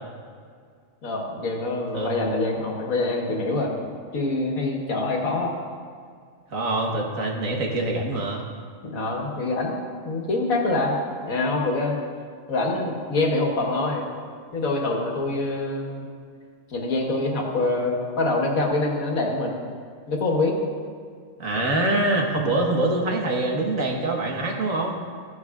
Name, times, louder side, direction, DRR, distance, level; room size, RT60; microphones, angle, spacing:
voice 1, 1.0-3.7 4.1-5.5 8.8-11.0 11.3-12.0 12.5-14.1 14.5-16.1 16.7-19.6 20.1-20.6 21.5-21.9, left 2 dB, 80° left, 0 dB, 1.8 m, -25 dB
voice 2, 6.5-8.4 21.4-25.0, right 2 dB, 75° right, 0 dB, 1.8 m, -24 dB
15.0 x 9.6 x 2.4 m, 2.1 s
omnidirectional pair, 1.4 m